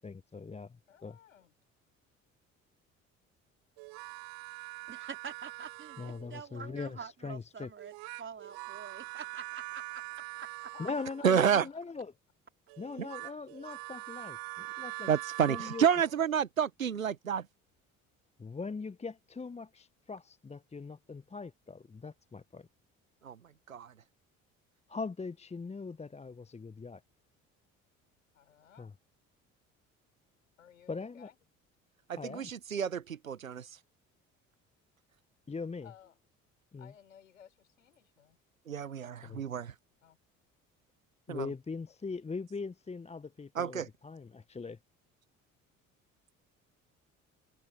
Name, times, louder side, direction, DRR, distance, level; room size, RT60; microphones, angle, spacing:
voice 1, 0.0-1.2 6.0-7.7 10.8-12.1 12.8-15.1 15.5-15.9 18.4-22.7 24.9-27.0 28.8-28.9 30.9-31.3 32.2-32.5 35.5-35.9 36.7-36.9 39.2-39.4 41.3-44.8, left 4 dB, 15° left, 1.0 m, -41 dB
voice 2, 0.9-1.5 10.7-11.8 19.9-20.0 28.3-28.9 30.6-31.4 35.8-36.2 36.8-38.4 40.0-40.2 41.9-42.0, left 9 dB, 80° left, 6.3 m, -57 dB
sound 1, 3.8-6.4 7.8-11.4 12.7-16.3, right 29 dB, 60° right, 2.3 m, -43 dB
voice 3, 4.9-10.7, right 6 dB, 30° right, 4.1 m, -46 dB
voice 4, 11.2-11.7 13.0-13.1 15.1-17.4 23.2-23.4 23.7-23.9 32.1-33.7 38.7-39.7 41.3-41.5 43.5-43.9, right 8 dB, 85° right, 1.1 m, -29 dB
figure-of-eight pair, 50°, 39 cm